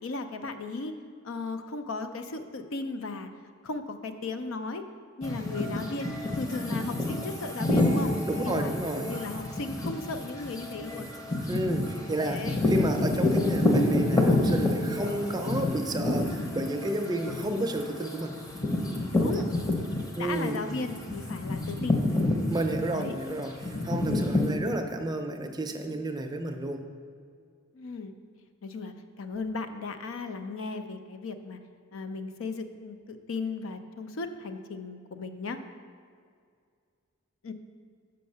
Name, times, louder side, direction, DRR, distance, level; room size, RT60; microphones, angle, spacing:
voice 1, 0.0-0.9 1.2-3.3 3.6-4.8 5.2-8.2 8.4-11.1 12.2-12.6 19.1-19.5 20.2-22.0 22.9-23.2 27.7-28.1 28.6-31.6 31.9-35.6 37.4-37.5, left 3 dB, 75° left, 8 dB, 0.5 m, -36 dB
sound 1, 5.2-20.3 20.7-24.5, left 2 dB, 20° left, 0.7 m, -28 dB
voice 2, 8.3-9.1 11.5-18.3 19.2-19.5 20.2-20.6 22.5-26.8, right 1 dB, 20° right, 5 dB, 0.5 m, -31 dB
5.5 x 5.3 x 6.6 m, 2.2 s
head